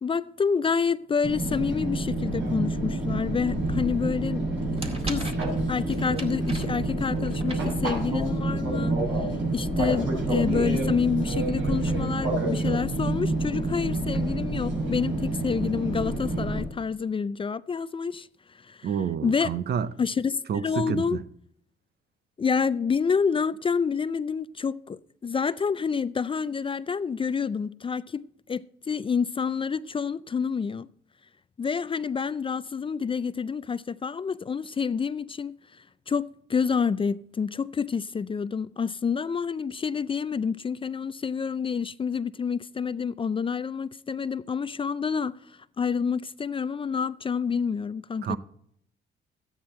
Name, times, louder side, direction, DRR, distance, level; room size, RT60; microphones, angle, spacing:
voice 1, 0.0-4.4 5.0-5.3 5.7-18.3 18.5-18.9 19.2-19.5 20.0-21.2 22.4-28.2 28.5-30.9 31.6-35.6 36.1-45.3 45.8-48.4, left 6 dB, 25° left, 0.4 m, -28 dB
Fixed-wing aircraft airplane, 1.2-16.6, right 2 dB, 80° right, 5.9 m, -28 dB
sound 1, 4.4-8.4, right 2 dB, 30° right, 2.1 m, -40 dB
voice 2, 18.8-19.9 20.5-21.2 48.2-48.4, right 7 dB, 55° right, 0.7 m, -29 dB
13.5 x 9.5 x 4.3 m
cardioid pair, 90°, 20 cm